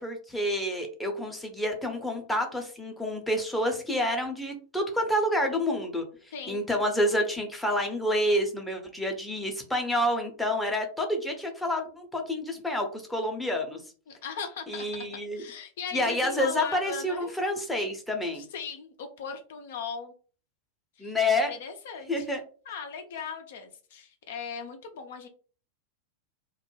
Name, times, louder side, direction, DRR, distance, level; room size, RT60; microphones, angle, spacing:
voice 1, 0.0-6.1 6.5-13.8 14.7-15.4 15.9-18.4 21.0-21.5 22.1-22.4, left 1 dB, 5° left, 2 dB, 0.6 m, -28 dB
voice 2, 6.3-6.6 14.1-15.1 15.3-17.3 18.3-20.1 21.0-21.1 21.5-22.4 22.7-25.3, left 6 dB, 55° left, 5 dB, 0.4 m, -38 dB
2.2 x 2.0 x 3.1 m, 0.40 s
figure-of-eight pair, 90°, 0 cm